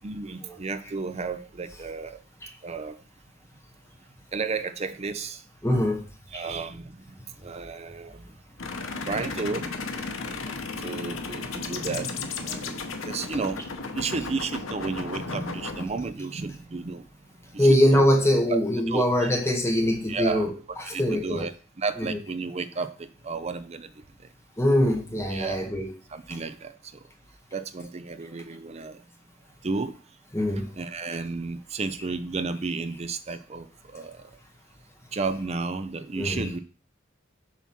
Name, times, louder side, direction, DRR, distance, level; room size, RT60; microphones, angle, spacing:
voice 1, 0.0-2.2 2.6-3.0 4.3-5.4 6.3-7.0 7.4-8.3 9.0-13.6 13.9-17.0 17.5-18.0 18.5-18.6 18.9-19.3 20.1-20.5 20.9-21.5 21.8-23.9 25.3-25.6 26.1-26.7 27.5-29.0 29.6-29.9 30.7-33.7 33.9-34.2 35.1-36.6, right 4 dB, 35° right, 11 dB, 0.5 m, -32 dB
voice 2, 5.6-6.0 6.3-6.5 10.8-10.9 17.6-21.5 21.9-22.2 24.6-25.9 30.3-30.7 36.2-36.5, left 1 dB, 15° left, 1 dB, 1.0 m, -23 dB
sound 1, 8.6-15.9, left 4 dB, 90° left, 0.9 m, -34 dB
7.0 x 3.0 x 5.9 m, 0.38 s
head